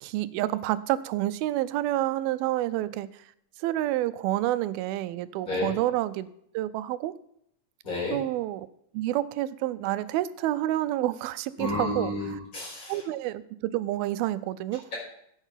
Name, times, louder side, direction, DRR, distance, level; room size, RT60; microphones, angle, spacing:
voice 1, 0.0-3.1 3.6-6.3 6.5-7.1 8.1-8.7 8.9-12.1 12.9-14.8, right 14 dB, 90° right, 15 dB, 2.5 m, -28 dB
voice 2, 7.8-8.2 11.6-13.0, left 2 dB, 20° left, -6 dB, 5.7 m, -31 dB
12.5 x 8.2 x 5.7 m, 0.71 s
omnidirectional pair, 4.2 m